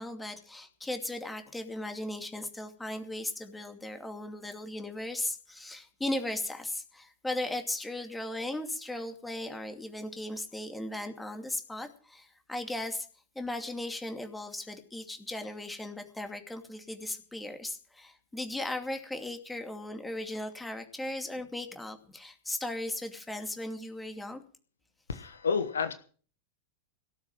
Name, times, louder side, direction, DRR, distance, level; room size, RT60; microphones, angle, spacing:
voice 1, 0.0-13.1 13.3-24.4, left 1 dB, 5° left, 6 dB, 2.5 m, -37 dB
voice 2, 25.1-25.9, left 5 dB, 70° left, 11 dB, 1.3 m, -30 dB
18.0 x 7.2 x 7.8 m, 0.43 s
figure-of-eight pair, 90°, 0 cm